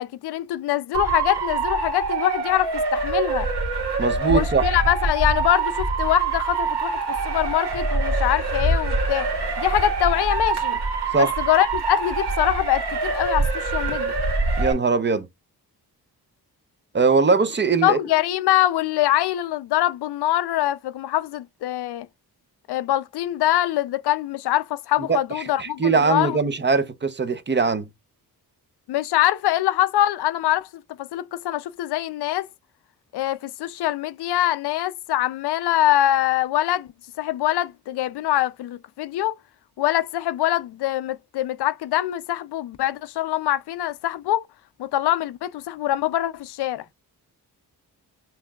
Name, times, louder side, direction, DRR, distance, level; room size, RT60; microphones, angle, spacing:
voice 1, 0.0-3.5 4.3-7.0 7.2-9.3 9.6-10.8 11.2-14.1 17.8-22.1 22.7-26.4 28.9-30.7 31.0-32.5 33.1-36.9 37.2-39.3 39.8-44.5 44.8-46.8, left 13 dB, 80° left, 0.5 m, -23 dB
Motor vehicle (road) / Siren, 0.9-14.7, right 3 dB, 75° right, 1.6 m, -25 dB
voice 2, 4.0-4.7 11.1-11.3 14.6-15.3 16.9-18.0 25.1-25.2 25.6-27.9, right 4 dB, 30° right, 0.6 m, -21 dB
5.6 x 2.7 x 2.3 m
cardioid pair, 75°, 39 cm